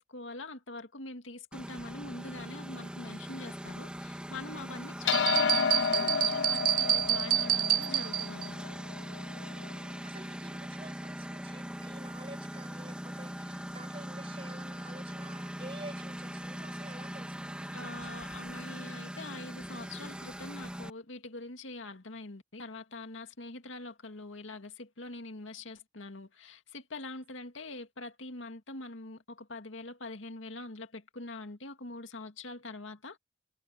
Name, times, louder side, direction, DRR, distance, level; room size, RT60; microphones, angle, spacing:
voice 1, 0.0-8.6 17.7-33.2, left 2 dB, 80° left, 2.1 m, -44 dB
Engine, 1.5-20.9, equal, 5° right, 2.1 m, -41 dB
sound 1, 5.1-9.7, left 6 dB, 65° left, 0.5 m, -31 dB
sound 2, 5.1-8.5, right 11 dB, 45° right, 0.7 m, -28 dB
voice 2, 9.3-18.1, right 2 dB, 30° right, 8.0 m, -50 dB
head